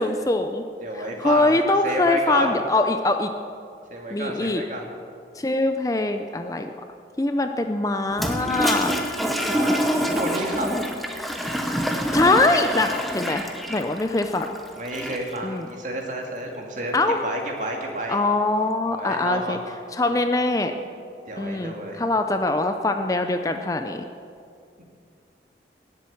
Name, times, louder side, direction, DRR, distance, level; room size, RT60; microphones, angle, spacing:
voice 1, 0.0-0.6 0.9-3.3 4.1-4.6 5.4-6.7 7.2-8.9 12.1-13.4 13.7-14.5 15.4-15.7 16.9-17.2 18.1-19.6 19.9-20.7 21.4-24.0, left 2 dB, 20° left, 6 dB, 0.5 m, -23 dB
voice 2, 0.8-2.6 3.9-4.9 9.4-10.7 14.8-18.2 19.0-19.8 21.3-22.0 24.8-24.9, right 1 dB, 45° right, 1 dB, 2.2 m, -31 dB
Toilet flush, 8.1-15.4, equal, ahead, 0.9 m, -26 dB
19.0 x 7.6 x 7.2 m, 2.3 s
head